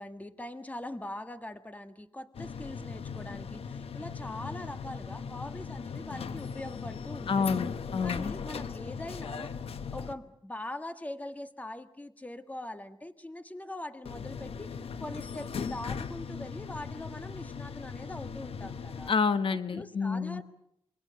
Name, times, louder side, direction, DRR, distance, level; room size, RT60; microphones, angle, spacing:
voice 1, 0.0-7.5 8.0-9.5 9.9-14.7 15.0-19.1 19.7-20.4, left 1 dB, 15° left, 9 dB, 1.7 m, -42 dB
sound 1, 2.3-10.1 14.1-19.1, left 6 dB, 85° left, 1.2 m, -39 dB
voice 2, 7.3-8.4 19.1-20.4, left 5 dB, 65° left, 11 dB, 1.3 m, -29 dB
27.0 x 22.5 x 6.6 m, 0.74 s
wide cardioid pair, 90°, 10 cm